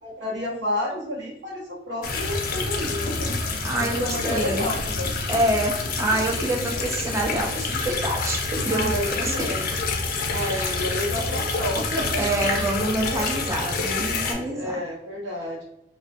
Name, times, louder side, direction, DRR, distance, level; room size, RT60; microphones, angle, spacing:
voice 1, 0.0-3.5 3.8-5.3 8.7-9.8 10.3-12.6 13.1-13.2 14.3-15.6, left 1 dB, 90° right, -4 dB, 0.8 m, -30 dB
sound 1, 2.0-14.3, left 3 dB, 55° left, 0.4 m, -27 dB
voice 2, 3.6-4.7 5.3-5.7 6.0-9.5 10.4-10.7 12.2-14.8, right 1 dB, 15° right, -1 dB, 0.3 m, -26 dB
2.3 x 2.1 x 2.5 m, 0.83 s
head